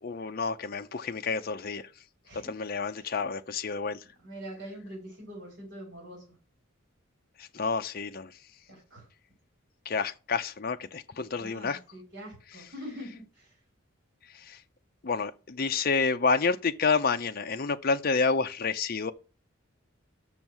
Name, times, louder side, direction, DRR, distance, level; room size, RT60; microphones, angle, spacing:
voice 1, 0.0-1.8 2.3-4.0 7.4-8.3 9.9-11.8 14.4-14.6 15.0-19.1, left 4 dB, 45° left, 0.6 m, -29 dB
voice 2, 2.9-3.2 4.2-6.2 8.7-9.1 11.4-13.5, equal, 55° right, 3.8 m, -44 dB
7.2 x 6.3 x 6.0 m
head